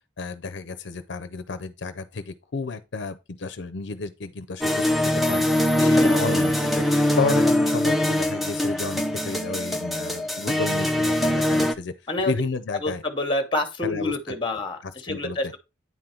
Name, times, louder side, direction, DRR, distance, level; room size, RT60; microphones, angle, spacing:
voice 1, 0.2-4.9 5.3-11.9 12.3-13.0 13.8-14.3 14.8-15.4, left 4 dB, 65° left, 0.6 m, -32 dB
sound 1, 4.6-11.7, left 1 dB, ahead, 0.5 m, -22 dB
voice 2, 5.8-6.3 12.1-12.3 12.8-15.6, left 2 dB, 25° left, 1.0 m, -28 dB
9.3 x 3.9 x 4.4 m
head